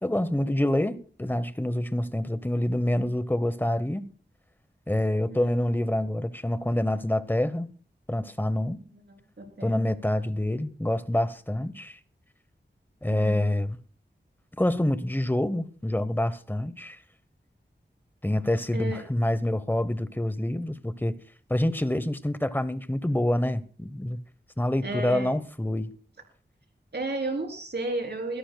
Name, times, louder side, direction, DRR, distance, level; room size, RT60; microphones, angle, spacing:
voice 1, 0.0-4.1 4.9-7.7 8.1-8.8 9.6-12.0 13.0-13.8 14.6-17.0 18.2-21.2 21.5-24.2 24.6-25.9, left 1 dB, 10° left, 0.9 m, -27 dB
voice 2, 9.4-9.9 13.1-13.5 18.7-19.0 24.8-25.3 26.9-28.4, right 2 dB, 60° right, 3.6 m, -33 dB
22.5 x 13.5 x 2.3 m
wide cardioid pair, 75°, 19 cm